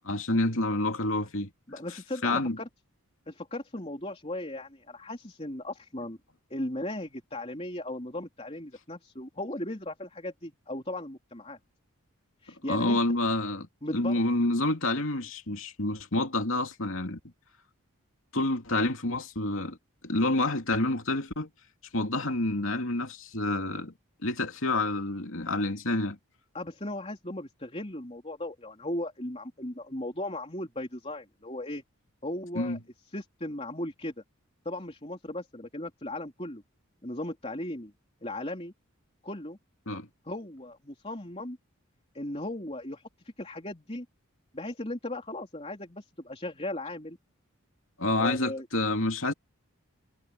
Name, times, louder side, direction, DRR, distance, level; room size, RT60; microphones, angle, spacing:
voice 1, 0.0-1.5 2.2-2.6 12.7-13.7 13.9-17.2 18.3-19.8 20.0-21.5 21.9-23.9 24.2-26.2 32.5-32.8 39.9-40.1 48.0-49.3, left 2 dB, 65° left, 2.8 m, -28 dB
voice 2, 1.7-2.7 3.3-6.2 6.5-11.6 12.4-13.0 13.8-14.1 26.5-31.8 32.2-32.8 33.1-34.1 34.7-36.6 37.0-37.9 38.2-38.7 39.2-39.6 40.3-41.6 42.1-44.1 44.5-47.2 48.2-48.7, left 1 dB, 25° left, 3.6 m, -37 dB
head